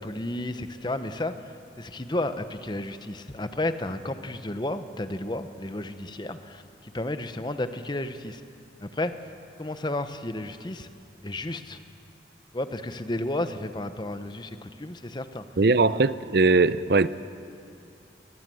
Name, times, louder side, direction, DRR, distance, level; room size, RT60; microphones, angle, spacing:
voice 1, 0.0-1.3 1.8-8.4 8.8-9.1 9.6-10.9 11.2-11.8 12.5-15.4 15.9-16.0, left 1 dB, 25° left, 0.9 m, -32 dB
voice 2, 15.6-17.1, right 3 dB, 60° right, 0.6 m, -20 dB
22.0 x 19.5 x 7.7 m
head